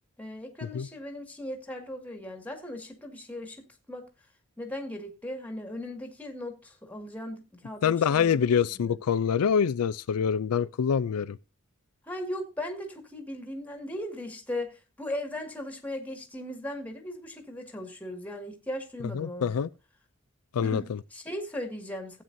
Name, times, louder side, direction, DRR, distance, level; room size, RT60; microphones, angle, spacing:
voice 1, 0.2-4.1 4.6-8.5 8.7-9.0 12.0-19.5 20.6-22.2, left 1 dB, 5° left, 1.9 m, -38 dB
voice 2, 7.8-11.4 19.1-19.7 20.5-20.8, left 7 dB, 85° left, 0.4 m, -25 dB
15.5 x 8.9 x 2.7 m
head